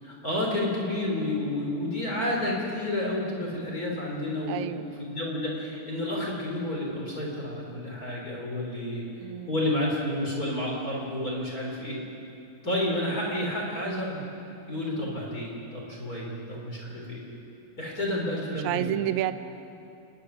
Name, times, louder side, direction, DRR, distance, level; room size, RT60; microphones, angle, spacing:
voice 1, 0.0-4.7 5.0-12.0 12.6-14.2 14.7-17.2 17.8-18.9, left 1 dB, 25° left, -3 dB, 4.0 m, -30 dB
voice 2, 4.5-4.9 9.2-9.5 15.0-15.2 18.5-19.3, right 13 dB, 75° right, 11 dB, 1.9 m, -30 dB
27.5 x 11.5 x 9.8 m, 2.7 s
omnidirectional pair, 3.8 m